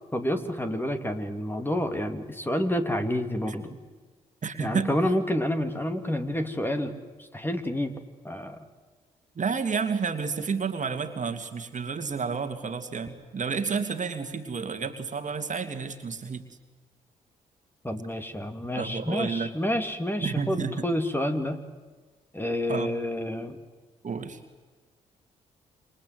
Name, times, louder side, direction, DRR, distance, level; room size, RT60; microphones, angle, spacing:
voice 1, 0.1-3.7 4.6-7.9 8.2-8.6 17.8-21.6 22.3-23.6, left 1 dB, 10° left, 7 dB, 2.9 m, -29 dB
voice 2, 4.4-4.9 9.4-16.5 18.8-19.5 20.2-20.8 22.7-22.9 24.0-24.4, right 5 dB, 45° right, 7 dB, 2.5 m, -30 dB
28.0 x 24.5 x 8.0 m, 1.4 s
hypercardioid pair, 40°, 18 cm